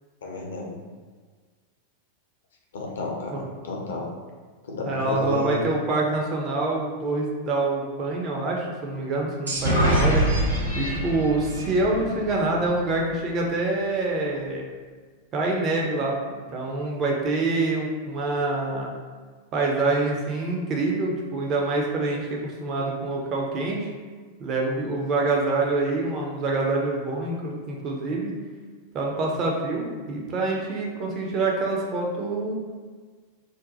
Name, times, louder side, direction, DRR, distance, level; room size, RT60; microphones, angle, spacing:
voice 1, 0.2-0.8 2.7-4.1 4.6-5.6, left 3 dB, 65° left, -1 dB, 0.6 m, -32 dB
voice 2, 4.9-10.2 10.7-14.7 15.3-18.9 19.5-23.9 24.4-28.4 28.9-32.5, right 2 dB, 35° right, -1 dB, 0.5 m, -26 dB
sound 1, 9.5-13.1, right 1 dB, 80° right, 0.8 m, -25 dB
2.6 x 2.1 x 3.9 m, 1.5 s
figure-of-eight pair, 90°, 0 cm